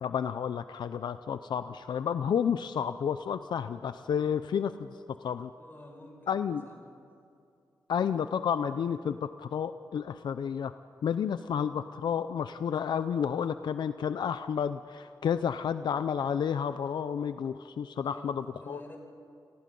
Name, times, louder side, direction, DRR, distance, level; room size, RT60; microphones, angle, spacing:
voice 1, 0.0-4.9 5.2-5.5 6.3-6.6 7.9-10.8 11.0-18.8, left 7 dB, 80° left, 11 dB, 0.6 m, -31 dB
voice 2, 5.6-7.0 18.0-19.0, left 1 dB, 30° left, 2 dB, 5.2 m, -50 dB
29.0 x 19.0 x 5.4 m, 2.5 s
wide cardioid pair, 120°, 8 cm